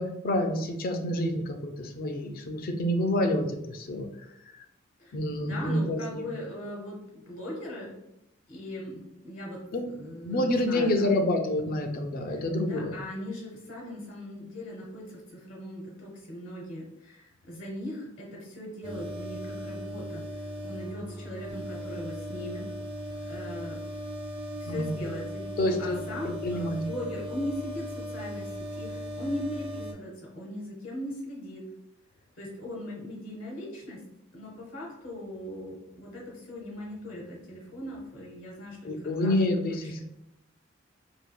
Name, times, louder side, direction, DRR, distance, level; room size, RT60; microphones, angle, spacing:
voice 1, 0.0-4.1 5.1-6.2 9.7-9.9 10.2-13.0 24.7-25.0 25.6-26.0 26.2-26.8 38.8-40.0, left 1 dB, 45° left, 5 dB, 0.4 m, -28 dB
voice 2, 5.0-7.9 8.5-11.2 12.3-22.6 23.3-23.8 24.6-31.6 32.4-34.0 34.3-40.0, left 1 dB, 70° left, -2 dB, 0.8 m, -39 dB
sound 1, 18.8-29.9, equal, 25° right, 0.5 m, -38 dB
3.4 x 2.7 x 2.3 m, 0.83 s
head